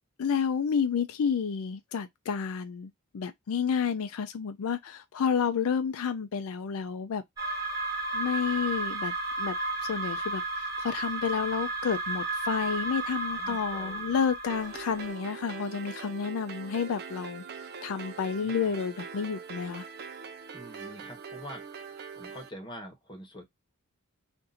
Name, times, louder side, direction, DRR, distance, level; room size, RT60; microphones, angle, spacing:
voice 1, 0.2-7.2 8.1-9.6 9.8-10.4 10.8-17.4 17.8-19.9, left 6 dB, 70° left, 0.4 m, -30 dB
sound 1, 7.4-15.1, right 2 dB, 15° right, 1.5 m, -33 dB
voice 2, 13.2-14.2 18.4-18.7 20.5-23.4, equal, 20° left, 1.1 m, -46 dB
sound 2, 14.5-22.5, right 5 dB, 50° right, 0.5 m, -42 dB
2.6 x 2.6 x 4.0 m
head